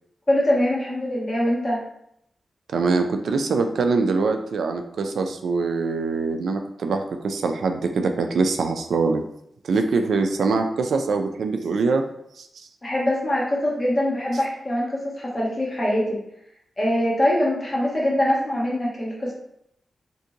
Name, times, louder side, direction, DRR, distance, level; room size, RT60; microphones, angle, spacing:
voice 1, 0.3-1.8 12.8-16.2 16.8-19.3, left 1 dB, 30° left, -4 dB, 1.2 m, -23 dB
voice 2, 2.7-9.2 9.6-12.0 12.4-12.5, right 4 dB, 85° right, 5 dB, 0.3 m, -23 dB
2.8 x 2.6 x 3.7 m, 0.75 s
wide cardioid pair, 85°, 0 cm